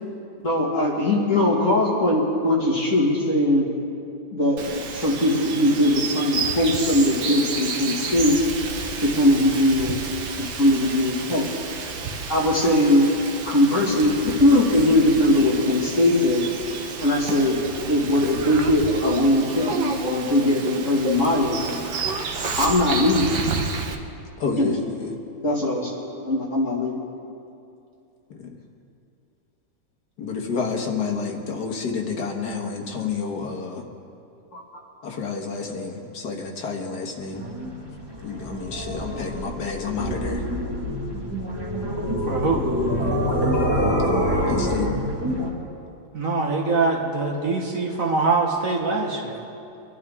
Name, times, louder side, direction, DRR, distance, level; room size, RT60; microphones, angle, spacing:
voice 1, 0.4-3.7 4.3-8.4 9.0-10.0 10.4-11.5 12.3-13.1 13.5-16.5 17.0-17.6 17.9-21.6 22.6-23.3 24.6-24.7 25.4-27.0 34.5-34.6, left 1 dB, 45° left, -3 dB, 2.4 m, -20 dB
Bird vocalization bird call bird song, 4.6-23.9, right 4 dB, 75° right, 1.6 m, -31 dB
voice 2, 24.4-25.1 30.2-33.8 35.0-37.4 38.2-40.4 44.5-44.9, left 5 dB, 65° left, 2 dB, 1.9 m, -29 dB
sound 1, 37.3-45.5, equal, 15° right, 1.9 m, -26 dB
voice 3, 42.2-42.7 46.1-49.4, right 3 dB, 55° right, 1 dB, 1.5 m, -23 dB
25.0 x 11.5 x 3.6 m, 2.6 s
omnidirectional pair, 1.9 m